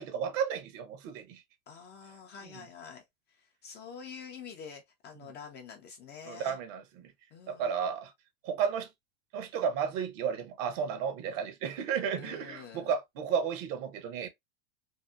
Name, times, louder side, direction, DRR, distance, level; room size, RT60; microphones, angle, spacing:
voice 1, 0.0-1.4 6.3-7.1 7.5-8.1 8.4-8.9 9.3-14.3, right 7 dB, 60° right, 0.8 m, -33 dB
voice 2, 1.7-6.6 7.3-7.7 12.2-12.9, left 6 dB, 25° left, 0.3 m, -47 dB
2.7 x 2.0 x 2.2 m
hypercardioid pair, 105°, 43 cm